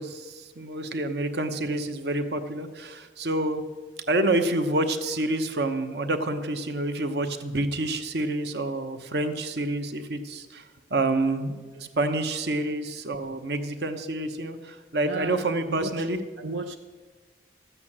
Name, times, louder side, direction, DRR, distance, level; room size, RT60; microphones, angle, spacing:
voice 1, 0.0-3.6 4.1-10.6 10.9-11.5 11.8-16.2, right 2 dB, 60° right, 1.0 m, -28 dB
voice 2, 15.0-16.1 16.4-16.8, right 3 dB, 90° right, 0.6 m, -35 dB
13.5 x 8.4 x 7.3 m
head